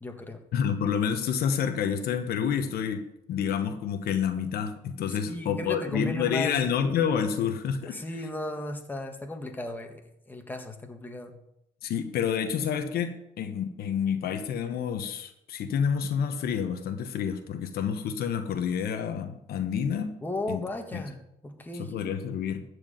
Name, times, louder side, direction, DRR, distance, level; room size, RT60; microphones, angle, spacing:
voice 1, 0.0-0.4 5.3-7.0 7.9-10.0 10.3-11.3 20.2-21.9, left 1 dB, 10° left, 4 dB, 1.8 m, -35 dB
voice 2, 0.5-8.0 11.8-20.1 20.5-20.7 20.9-21.0 21.8-22.6, left 7 dB, 65° left, 7 dB, 1.2 m, -29 dB
14.0 x 4.9 x 9.1 m, 0.81 s
cardioid pair, 110°, 17 cm